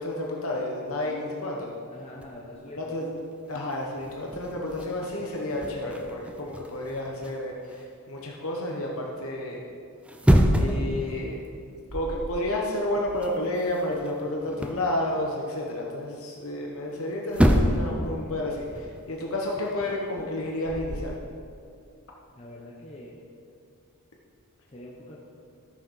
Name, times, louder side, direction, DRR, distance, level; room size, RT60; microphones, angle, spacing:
voice 1, 0.0-1.7 2.7-3.1 3.5-9.6 10.5-11.4 11.9-21.2, left 1 dB, 65° left, -1 dB, 1.2 m, -31 dB
voice 2, 1.9-2.9 22.3-23.2 24.7-25.2, left 1 dB, 30° left, -4 dB, 1.1 m, -44 dB
sound 1, 2.2-2.6 3.2-3.3 3.5-7.8 9.9-10.9 11.3-11.5 11.9-12.4 12.7-14.9 16.9-17.0 17.3-18.0 18.3-21.1, equal, 5° right, 0.6 m, -27 dB
13.5 x 6.6 x 5.7 m, 2.3 s
head